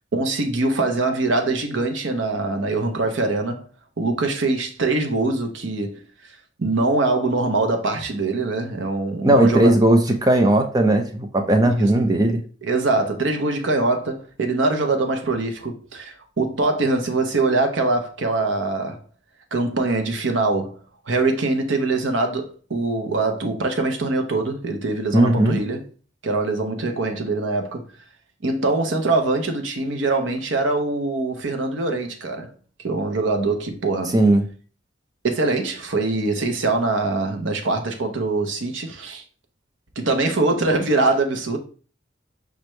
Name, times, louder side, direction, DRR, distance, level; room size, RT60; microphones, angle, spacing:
voice 1, 0.1-3.7 4.0-6.0 6.6-9.7 11.6-12.1 12.6-19.0 19.5-20.8 21.1-25.8 26.2-27.9 28.4-32.5 32.8-34.2 35.2-39.2 40.0-41.6, right 3 dB, 75° right, 0.8 m, -23 dB
voice 2, 9.2-12.4 25.1-25.6 34.1-34.4, right 1 dB, 20° right, 0.5 m, -17 dB
5.0 x 3.2 x 3.2 m
head